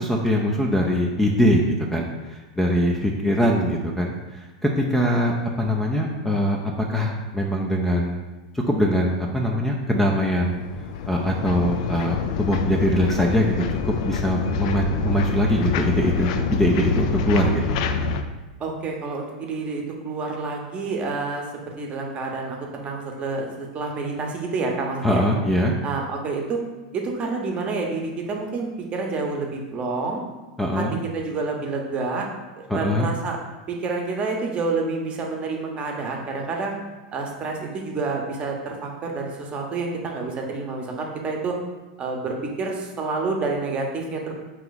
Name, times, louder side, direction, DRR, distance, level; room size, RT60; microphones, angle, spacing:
voice 1, 0.0-8.2 8.7-10.6 11.0-17.8 25.0-25.7 30.6-31.0 32.7-33.1, equal, 5° left, -1 dB, 0.5 m, -22 dB
sound 1, 10.2-18.2, left 5 dB, 60° left, 0.4 m, -26 dB
voice 2, 18.6-21.5 21.8-25.3 25.8-26.6 26.9-30.2 30.7-30.8 31.1-32.3 32.7-33.4 33.7-36.7 37.1-41.6 42.0-44.3, right 3 dB, 30° right, 1 dB, 0.8 m, -28 dB
4.4 x 2.9 x 4.0 m, 1.1 s
hypercardioid pair, 120°, 4 cm